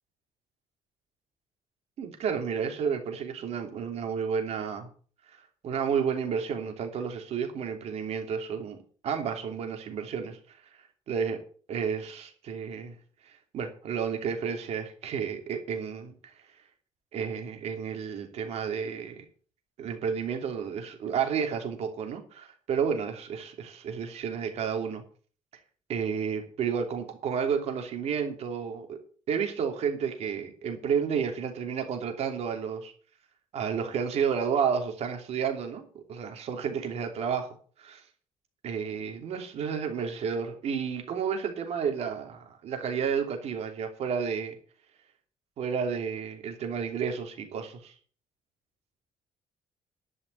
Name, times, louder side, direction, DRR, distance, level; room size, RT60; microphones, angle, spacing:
voice 1, 2.0-4.9 5.6-8.8 9.0-10.4 11.1-11.4 11.7-12.9 13.3-16.1 17.1-19.2 19.8-25.0 25.9-29.0 29.3-32.9 33.5-37.5 37.8-38.0 38.6-44.6 45.6-47.9, right 7 dB, 60° right, 5 dB, 2.9 m, -31 dB
11.5 x 5.8 x 8.1 m, 0.43 s
cardioid pair, 140°, 12 cm